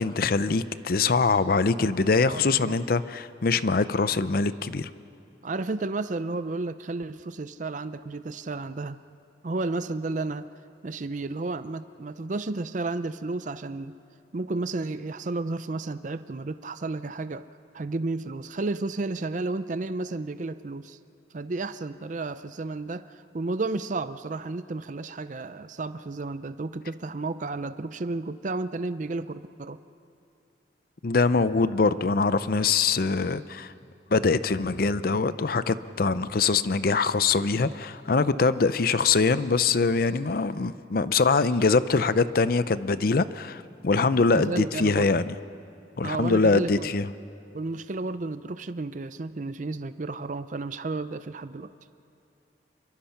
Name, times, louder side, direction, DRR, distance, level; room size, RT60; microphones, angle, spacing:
voice 1, 0.0-4.9 31.0-33.7 34.1-45.3 46.0-47.1, left 4 dB, 55° left, 14 dB, 0.6 m, -23 dB
voice 2, 2.3-2.7 5.4-9.0 9.4-10.5 10.8-13.9 14.3-17.5 17.7-21.0 21.3-29.8 44.3-45.1 46.0-46.9 47.5-51.7, right 3 dB, 45° right, 12 dB, 0.5 m, -32 dB
27.0 x 23.5 x 5.8 m, 2.6 s
head